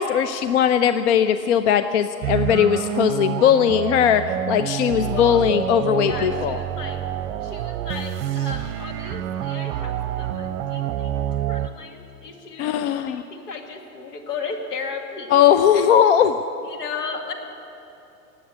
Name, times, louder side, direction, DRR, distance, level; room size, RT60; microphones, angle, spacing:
voice 1, 0.0-4.2 4.5-6.6 12.6-13.2 15.3-16.4, left 9 dB, 45° left, 11 dB, 0.6 m, -19 dB
sound 1, 2.2-11.7, right 11 dB, 35° right, 0.8 m, -27 dB
voice 2, 5.0-5.4 6.0-7.0 7.4-15.9 16.6-17.3, left 5 dB, 70° left, 3 dB, 2.2 m, -35 dB
18.5 x 7.9 x 9.7 m, 2.9 s
hypercardioid pair, 105°, 50 cm